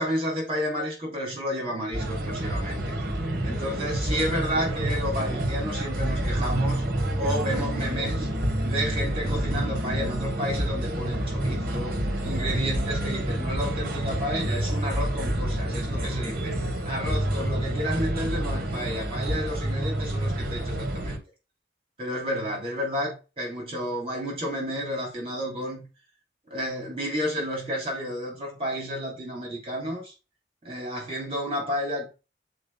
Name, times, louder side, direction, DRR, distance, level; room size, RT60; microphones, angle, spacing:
voice 1, 0.0-2.9 3.4-6.8 7.2-8.3 8.6-16.5 16.8-21.2 22.0-25.8 26.5-30.1 30.6-32.1, equal, 30° right, 3.3 m, -31 dB
sound 1, 1.9-21.2, right 1 dB, 50° right, 1.6 m, -28 dB
6.4 x 4.5 x 5.6 m
head